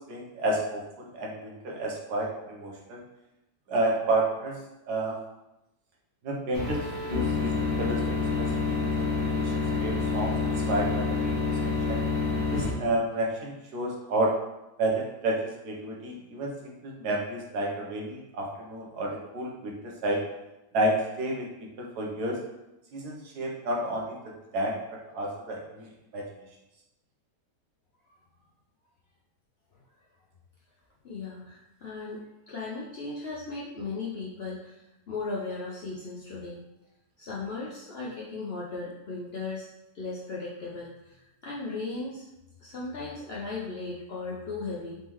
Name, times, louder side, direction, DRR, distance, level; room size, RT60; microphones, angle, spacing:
voice 1, 0.1-3.0 3.7-4.6 4.9-5.2 6.2-9.5 9.8-10.3 10.7-11.4 11.6-12.0 12.5-14.3 14.8-15.4 15.6-20.2 20.7-21.5 21.8-22.4 22.9-24.2 24.5-24.8 25.1-26.2, right 1 dB, 75° right, -2 dB, 1.3 m, -30 dB
sound 1, 6.5-12.7, left 4 dB, 55° left, 1.5 m, -28 dB
voice 2, 31.0-34.8 35.1-36.6 37.2-39.7 39.9-42.3 42.6-45.0, left 3 dB, 80° left, -6 dB, 0.5 m, -36 dB
4.1 x 3.6 x 3.0 m, 0.94 s
omnidirectional pair, 1.8 m